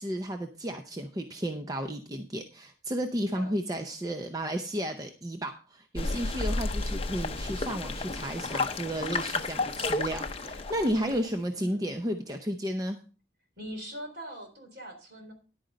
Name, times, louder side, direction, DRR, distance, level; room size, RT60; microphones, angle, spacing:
voice 1, 0.0-13.0, equal, 20° right, 6 dB, 0.6 m, -33 dB
voice 2, 3.3-3.9 10.4-10.6 11.0-11.2 11.5-11.9 13.6-15.3, equal, 60° right, 3 dB, 3.7 m, -42 dB
sound 1, 6.0-11.3, left 3 dB, 30° left, 0.7 m, -32 dB
10.5 x 9.2 x 3.9 m, 0.34 s
head